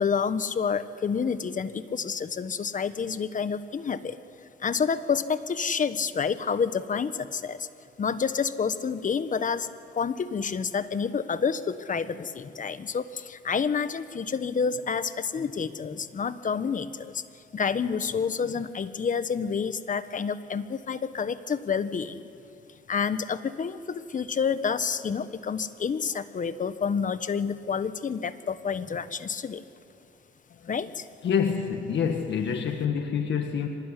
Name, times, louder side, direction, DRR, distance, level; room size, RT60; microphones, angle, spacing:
voice 1, 0.0-4.2 4.6-7.7 8.0-9.7 9.9-17.2 17.5-22.2 22.9-29.6 30.7-31.1, left 6 dB, 40° left, 13 dB, 1.2 m, -29 dB
voice 2, 31.2-33.7, left 7 dB, 65° left, 5 dB, 1.8 m, -27 dB
24.5 x 20.0 x 10.0 m, 2.8 s
cardioid pair, 90°, 20 cm